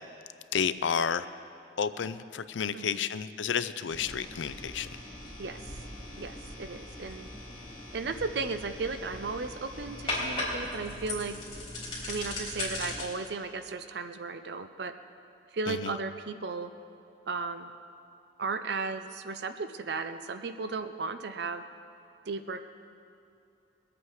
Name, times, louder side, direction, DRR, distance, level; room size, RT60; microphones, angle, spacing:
voice 1, 0.5-1.3 1.8-4.9 15.7-16.0, left 7 dB, 85° left, 14 dB, 0.5 m, -31 dB
sound 1, 3.9-13.0, left 1 dB, 25° left, 3.7 m, -39 dB
voice 2, 6.2-7.3 7.9-11.3 12.1-14.9 15.5-16.7 17.3-17.7 18.4-21.6 22.3-22.7, right 4 dB, 60° right, 9 dB, 0.5 m, -35 dB
21.5 x 8.5 x 4.8 m, 2.8 s
head